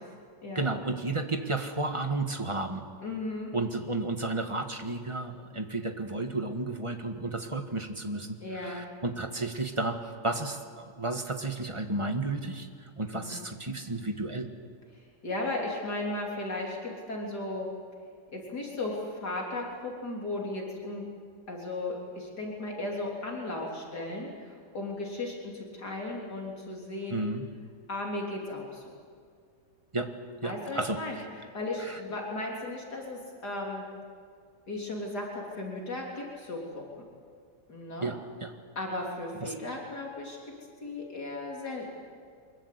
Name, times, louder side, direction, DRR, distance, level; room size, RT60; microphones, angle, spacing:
voice 1, 0.5-2.8 3.5-10.0 10.2-14.5 27.1-27.4 29.9-30.1 30.4-31.2 31.8-32.0 38.0-38.5 39.4-39.5, right 2 dB, 20° right, 5 dB, 1.6 m, -32 dB
voice 2, 3.0-3.5 8.4-8.8 13.1-13.4 15.2-17.7 18.3-21.1 21.5-27.3 27.9-28.8 30.4-31.2 31.5-33.9 34.7-37.0 37.7-38.1 38.8-40.4 40.8-41.9, left 2 dB, 65° left, -1 dB, 3.9 m, -36 dB
24.0 x 21.5 x 8.4 m, 2.1 s
omnidirectional pair, 1.9 m